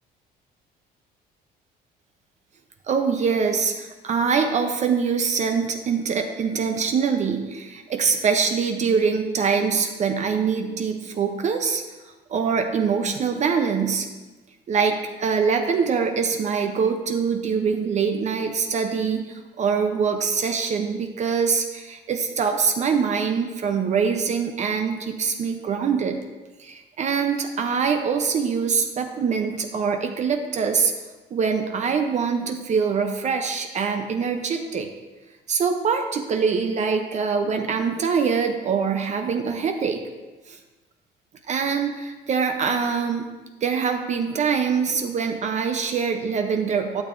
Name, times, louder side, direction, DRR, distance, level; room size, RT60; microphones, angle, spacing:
voice 1, 2.9-11.8 12.3-14.1 14.7-26.2 26.6-30.9 31.3-34.9 35.5-40.0 40.5-40.6 41.5-43.3 43.6-47.0, right 6 dB, 45° right, 5 dB, 0.6 m, -24 dB
11.5 x 6.8 x 2.6 m, 1.2 s
cardioid pair, 110°, 17 cm